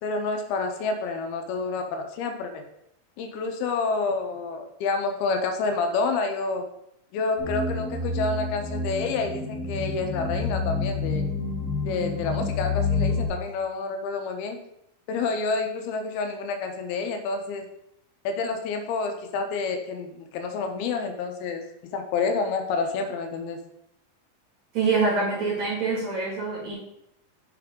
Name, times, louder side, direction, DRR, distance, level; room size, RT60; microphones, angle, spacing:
voice 1, 0.0-2.6 3.2-6.7 7.1-11.3 11.9-14.6 15.1-17.7 18.2-21.6 21.9-23.6, left 4 dB, 90° left, 5 dB, 2.7 m, -28 dB
sound 1, 7.4-13.3, left 4 dB, 5° left, 1.2 m, -28 dB
voice 2, 24.7-26.8, right 4 dB, 50° right, -5 dB, 2.7 m, -25 dB
6.7 x 3.6 x 5.0 m, 0.78 s
omnidirectional pair, 4.3 m